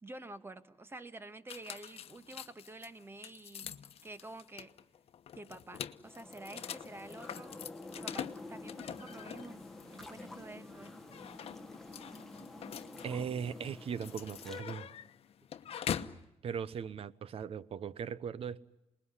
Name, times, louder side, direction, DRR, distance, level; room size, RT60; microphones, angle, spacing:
voice 1, 0.0-3.7 4.0-4.7 5.4-7.6 8.0-9.6 9.9-11.0, right 2 dB, 20° right, 1.6 m, -49 dB
sound 1, 1.5-16.2, left 9 dB, 60° left, 1.0 m, -45 dB
sound 2, 6.0-14.6, left 2 dB, 5° left, 1.7 m, -49 dB
voice 2, 13.0-14.9 16.4-18.7, right 7 dB, 60° right, 0.9 m, -39 dB
27.0 x 20.5 x 9.8 m
cardioid pair, 100°, 11 cm